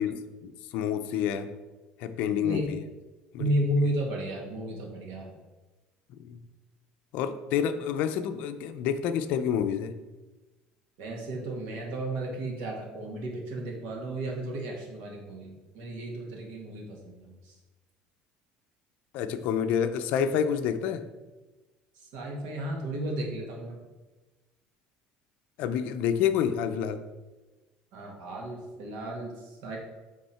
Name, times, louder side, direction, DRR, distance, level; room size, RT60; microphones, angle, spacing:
voice 1, 0.0-1.5 2.0-2.8 3.3-3.5 6.2-6.4 7.1-10.0 19.1-21.0 25.6-27.0, left 8 dB, 60° left, 9 dB, 0.5 m, -28 dB
voice 2, 3.4-5.3 11.0-17.6 22.0-23.8 27.9-29.8, right 1 dB, 70° right, 0 dB, 1.8 m, -33 dB
10.0 x 3.6 x 4.3 m, 1.2 s
cardioid pair, 165°, 3 cm